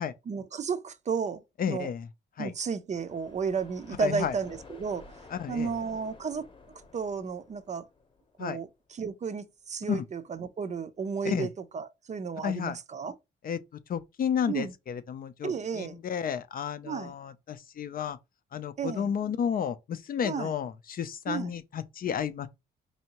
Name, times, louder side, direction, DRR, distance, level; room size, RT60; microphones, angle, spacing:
voice 1, 0.3-1.9 2.4-6.4 6.9-7.9 8.4-8.7 9.0-13.1 14.5-14.7 15.4-16.0 16.8-17.1 18.8-19.1 20.2-20.5 21.3-21.5, right 5 dB, 35° right, 0.5 m, -33 dB
voice 2, 1.6-2.1 2.4-2.5 4.0-4.3 5.3-5.7 8.4-8.6 9.9-10.0 11.2-11.5 12.4-12.8 13.4-13.6 13.9-18.2 18.5-22.5, left 8 dB, 45° left, 0.4 m, -32 dB
sound 1, 2.9-8.7, left 3 dB, 25° left, 0.8 m, -52 dB
4.4 x 2.7 x 2.9 m
cardioid pair, 90°, 20 cm